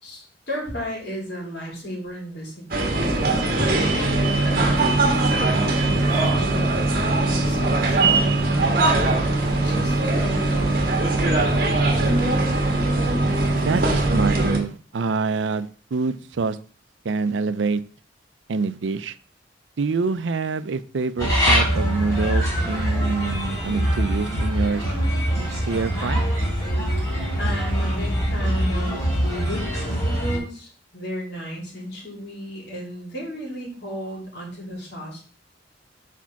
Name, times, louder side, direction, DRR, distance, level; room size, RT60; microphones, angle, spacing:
voice 1, 0.0-11.5 27.0-27.1 27.4-28.9 29.2-35.2, equal, 65° left, -2 dB, 3.0 m, -34 dB
sound 1, 2.7-14.6, right 2 dB, 55° right, 1.5 m, -21 dB
voice 2, 13.5-16.6 17.0-17.8 18.5-19.2 19.8-24.9 25.5-26.2, right 4 dB, 80° right, 14 dB, 0.5 m, -26 dB
sound 2, 21.2-30.4, equal, 20° left, 3.4 m, -23 dB
4.9 x 4.5 x 5.8 m, 0.40 s
head